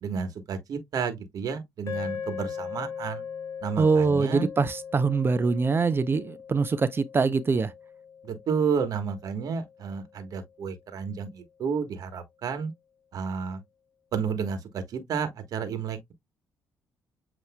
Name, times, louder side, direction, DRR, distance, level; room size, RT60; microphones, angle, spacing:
voice 1, 0.0-3.2 3.6-4.5 8.2-12.7 13.1-13.6 14.1-16.1, right 6 dB, 60° right, 1.3 m, -31 dB
sound 1, 1.9-10.2, left 7 dB, 50° left, 1.8 m, -40 dB
voice 2, 3.8-7.7, right 4 dB, 35° right, 0.5 m, -24 dB
7.8 x 3.0 x 2.2 m
supercardioid pair, 75°, 7 cm